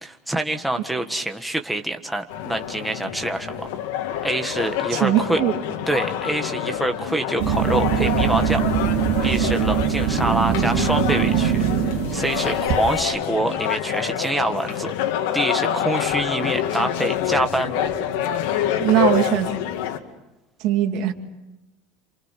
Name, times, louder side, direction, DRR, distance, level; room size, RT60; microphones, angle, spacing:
voice 1, 0.0-3.7 4.2-5.4 5.9-8.6 9.2-14.9 15.3-17.9, right 1 dB, 5° right, 5 dB, 1.5 m, -26 dB
sound 1, 2.3-20.0, left 10 dB, 85° left, 2.2 m, -26 dB
voice 2, 4.9-5.6 18.8-19.5 20.6-21.1, right 12 dB, 55° right, 4 dB, 2.5 m, -20 dB
sound 2, 7.4-13.0, right 10 dB, 75° right, 3.1 m, -22 dB
28.5 x 27.0 x 5.9 m, 0.99 s
cardioid pair, 165°, 0 cm